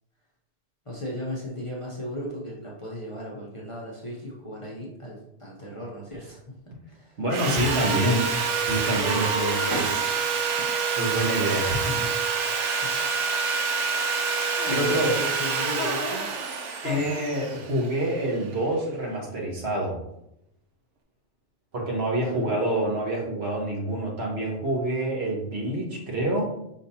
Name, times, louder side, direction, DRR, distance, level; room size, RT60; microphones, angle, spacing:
voice 1, 0.9-6.5 6.9-7.2 7.6-8.2 12.8-12.9 14.6-16.3 22.2-22.6, equal, 30° left, -5 dB, 0.7 m, -36 dB
voice 2, 7.2-8.2 8.7-10.1 10.9-12.0 14.7-15.1 16.8-20.0 21.7-26.5, right 1 dB, 60° right, -2 dB, 1.4 m, -27 dB
Sawing, 7.3-18.4, right 5 dB, 80° right, 0.9 m, -27 dB
sound 1, 8.6-10.7, right 1 dB, 25° right, 0.7 m, -35 dB
sound 2, 14.6-15.3 15.8-16.3 16.8-17.3, left 5 dB, 75° left, 0.9 m, -36 dB
5.2 x 3.1 x 2.7 m, 0.80 s
omnidirectional pair, 1.2 m